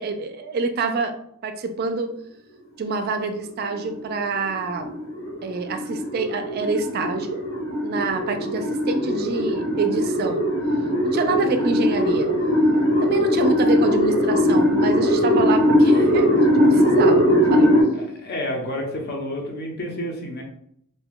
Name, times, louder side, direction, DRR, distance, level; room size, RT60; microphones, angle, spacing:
voice 1, 0.0-2.1 2.8-4.9 5.4-7.4 7.8-10.5 11.0-12.3 13.0-17.8, right 4 dB, 45° right, 8 dB, 0.3 m, -27 dB
sound 1, 3.5-17.8, equal, 85° left, 1.4 m, -20 dB
voice 2, 17.9-20.4, left 1 dB, 50° left, 1 dB, 0.6 m, -30 dB
2.6 x 2.2 x 3.5 m, 0.71 s
head